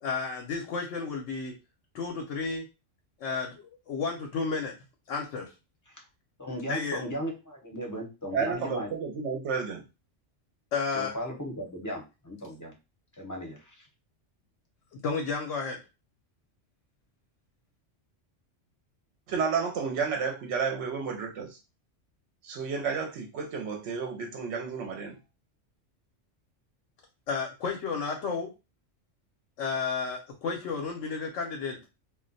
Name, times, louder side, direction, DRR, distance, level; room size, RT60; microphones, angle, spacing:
voice 1, 0.0-1.5 1.9-2.6 3.2-4.7 5.1-5.5 6.7-7.0 10.7-11.1 15.0-15.8 27.3-28.5 29.6-31.9, left 5 dB, 80° left, 1.0 m, -32 dB
voice 2, 6.4-8.9 10.9-12.7 13.2-13.9, equal, 20° left, 0.7 m, -36 dB
voice 3, 8.3-9.8 19.3-21.6 22.4-25.2, right 5 dB, 70° right, 0.9 m, -31 dB
2.4 x 2.1 x 3.9 m
omnidirectional pair, 1.3 m